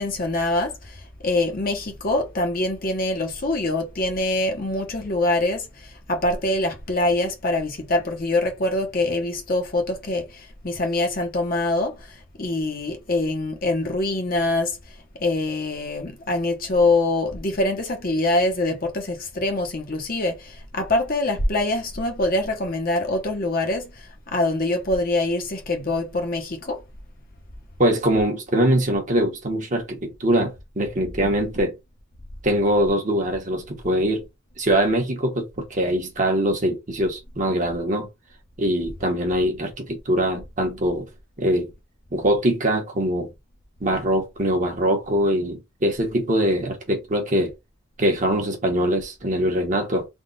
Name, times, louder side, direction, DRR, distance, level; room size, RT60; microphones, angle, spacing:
voice 1, 0.0-14.8 15.2-26.8, left 2 dB, 45° left, 0.9 m, -24 dB
voice 2, 27.8-31.8 32.4-34.3 34.6-38.1 38.6-41.1 41.4-41.7 42.1-43.3 43.8-47.5 48.0-50.1, right 1 dB, 40° right, 1.1 m, -22 dB
3.6 x 2.4 x 3.8 m
head